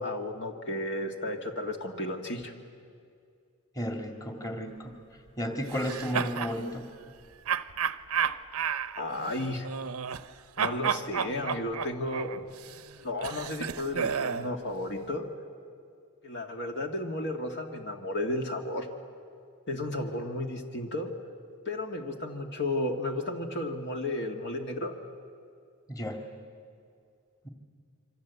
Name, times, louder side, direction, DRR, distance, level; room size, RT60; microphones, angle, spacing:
voice 1, 0.0-2.5 9.0-9.7 10.6-12.4 13.0-15.3 16.2-18.9 19.7-21.1 21.7-24.9, left 1 dB, 55° left, 3 dB, 2.1 m, -33 dB
voice 2, 3.8-5.0 5.4-6.9 25.9-26.2 27.4-27.5, equal, 15° left, 3 dB, 2.1 m, -33 dB
sound 1, 5.7-6.6 7.5-10.3 10.6-14.5, right 7 dB, 80° right, 0.8 m, -32 dB
27.5 x 25.0 x 8.3 m, 2.3 s
head